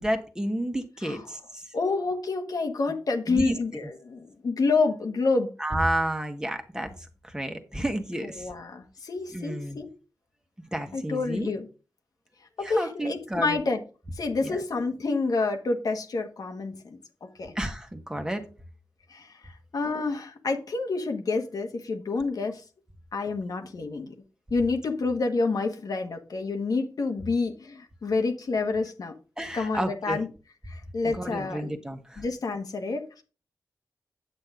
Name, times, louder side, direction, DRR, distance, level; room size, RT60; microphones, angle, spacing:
voice 1, 0.0-1.6 3.3-3.5 5.6-7.0 7.2-8.5 9.3-9.8 10.7-11.5 12.6-13.6 14.4-14.6 17.5-18.4 29.4-30.2 31.1-32.2, right 1 dB, 10° right, 1.3 m, -31 dB
voice 2, 1.7-5.5 8.2-9.9 10.9-11.7 12.6-13.8 14.1-17.0 17.4-17.5 19.1-22.6 23.1-24.1 24.5-29.1 29.5-30.3 30.7-31.7 32.2-33.2, left 3 dB, 70° left, 1.5 m, -28 dB
8.8 x 7.4 x 3.7 m
wide cardioid pair, 95°, 7 cm